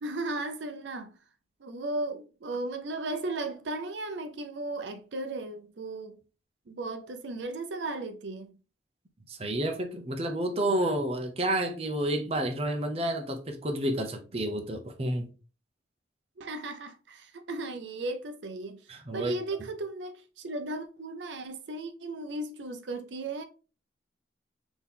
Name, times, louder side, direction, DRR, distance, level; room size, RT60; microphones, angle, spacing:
voice 1, 0.0-1.1 1.6-6.1 6.7-8.5 16.4-18.8 19.1-23.4, right 2 dB, 90° right, 0.5 m, -36 dB
voice 2, 9.3-15.3 18.9-19.3, right 1 dB, 35° right, 0.7 m, -30 dB
4.1 x 2.9 x 3.6 m
head